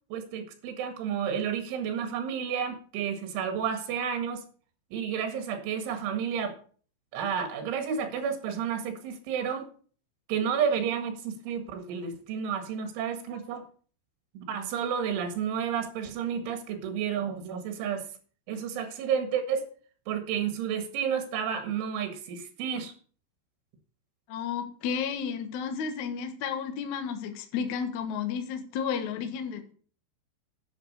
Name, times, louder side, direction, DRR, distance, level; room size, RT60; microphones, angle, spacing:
voice 1, 0.1-4.4 4.9-6.6 7.1-9.7 10.3-13.6 14.4-18.1 18.5-19.7 20.1-22.9, right 7 dB, 80° right, 7 dB, 4.3 m, -31 dB
voice 2, 24.3-29.7, left 7 dB, 65° left, 6 dB, 1.9 m, -32 dB
10.5 x 7.9 x 6.6 m, 0.43 s
omnidirectional pair, 5.4 m